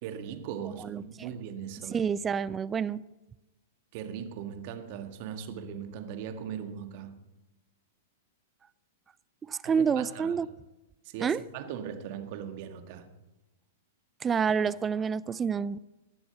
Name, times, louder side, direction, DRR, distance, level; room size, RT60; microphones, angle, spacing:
voice 1, 0.0-2.0 3.9-7.2 9.6-10.5 11.0-13.1, right 8 dB, 50° right, 1.7 m, -39 dB
voice 2, 0.9-1.3 1.9-3.0 9.5-10.5 11.2-11.4 14.2-15.8, right 6 dB, 20° right, 0.4 m, -28 dB
19.0 x 7.9 x 7.0 m
figure-of-eight pair, 105°, 0 cm